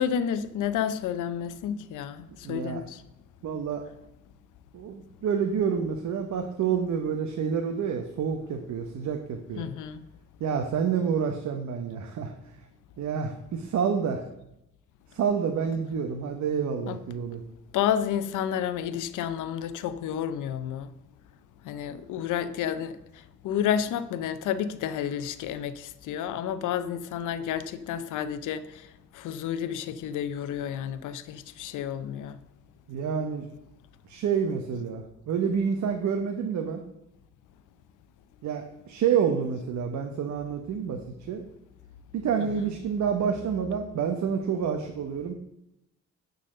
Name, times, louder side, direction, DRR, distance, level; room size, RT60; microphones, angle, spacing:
voice 1, 0.0-3.0 9.5-10.0 15.7-15.8 16.8-17.0 17.7-20.9 21.6-23.0 23.4-28.9 29.1-32.4 42.4-42.8, left 9 dB, 80° left, 0.6 m, -30 dB
voice 2, 2.4-2.8 3.4-3.8 4.7-9.7 10.4-12.3 13.0-14.2 15.1-17.4 32.9-33.5 34.1-36.8 38.4-41.4 42.1-45.3, right 7 dB, 65° right, 0.9 m, -28 dB
10.0 x 4.2 x 6.6 m
cardioid pair, 90°, 30 cm